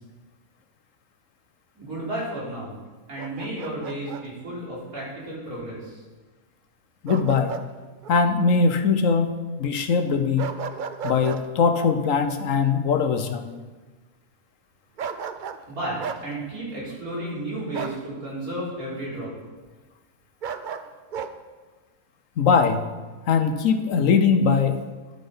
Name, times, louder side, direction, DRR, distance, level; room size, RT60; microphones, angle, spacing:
voice 1, 1.7-2.8 3.1-6.0 15.7-19.3, right 1 dB, 90° right, -7 dB, 4.7 m, -33 dB
Bark, 3.2-4.2 7.1-7.7 8.0-8.2 10.4-11.4 15.0-15.6 16.0-16.2 17.7-18.0 20.4-21.3, right 6 dB, 60° right, 0.5 m, -33 dB
voice 2, 7.0-7.5 8.1-10.5 11.0-13.5 22.4-22.9 23.3-24.8, left 5 dB, 65° left, 8 dB, 1.1 m, -21 dB
10.5 x 9.0 x 5.6 m, 1.3 s
omnidirectional pair, 1.5 m